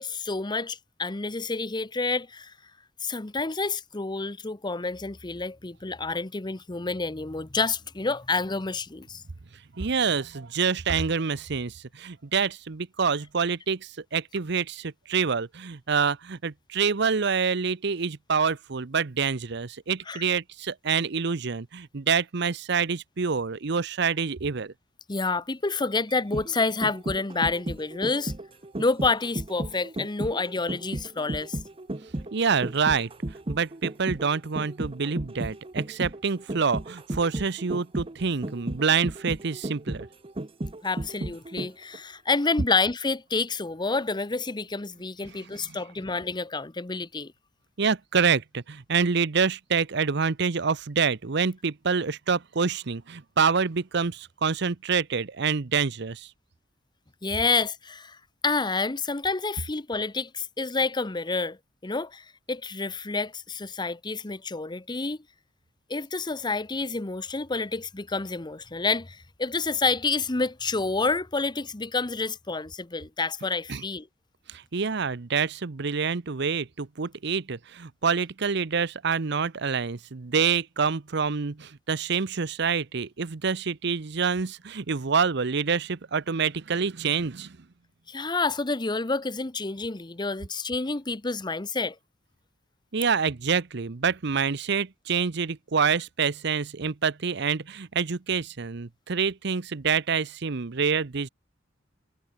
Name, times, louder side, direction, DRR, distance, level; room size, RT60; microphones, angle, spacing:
voice 1, 0.0-2.5 3.0-9.2 20.1-20.2 25.1-28.3 28.8-31.6 40.8-47.3 57.2-58.2 58.4-61.6 61.8-65.2 65.9-74.1 88.1-92.0, left 3 dB, 25° left, 0.9 m, -29 dB
voice 2, 9.8-24.7 32.3-33.1 33.5-40.1 47.8-56.3 73.7-73.8 74.5-87.6 92.9-101.3, right 5 dB, 65° right, 0.8 m, -27 dB
sound 1, 26.1-42.0 42.3-42.4, right 1 dB, 30° right, 0.9 m, -34 dB
head